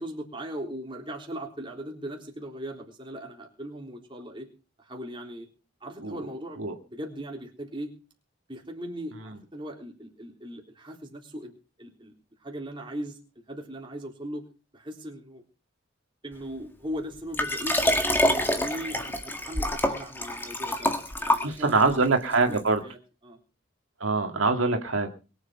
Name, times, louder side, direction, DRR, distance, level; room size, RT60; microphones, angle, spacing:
voice 1, 0.0-4.5 4.8-5.5 5.8-6.6 6.8-7.9 8.5-11.5 11.8-12.1 12.4-13.2 13.5-14.4 14.7-15.4 16.2-18.0 18.3-20.9 21.2-23.4, equal, 25° right, 1 dB, 3.7 m, -39 dB
Liquid, 17.3-21.9 22.6-22.7, left 1 dB, 10° left, 1.8 m, -26 dB
voice 2, 21.4-22.8 24.0-25.1, right 3 dB, 75° right, 4 dB, 2.2 m, -24 dB
22.5 x 8.1 x 5.7 m, 0.34 s
head